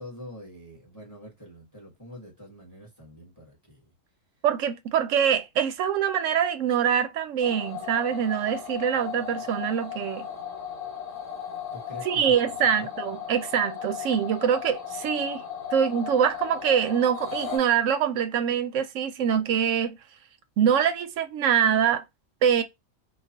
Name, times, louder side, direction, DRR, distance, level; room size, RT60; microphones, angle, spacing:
voice 1, 0.0-3.8 9.2-9.3 11.7-13.0, left 1 dB, 15° left, 1.3 m, -45 dB
voice 2, 4.4-10.3 12.0-15.4 15.7-20.0 20.6-22.0 22.4-22.6, right 8 dB, 70° right, 0.9 m, -24 dB
sound 1, 7.4-17.6, left 8 dB, 70° left, 1.6 m, -36 dB
3.1 x 2.3 x 2.7 m
omnidirectional pair, 1.4 m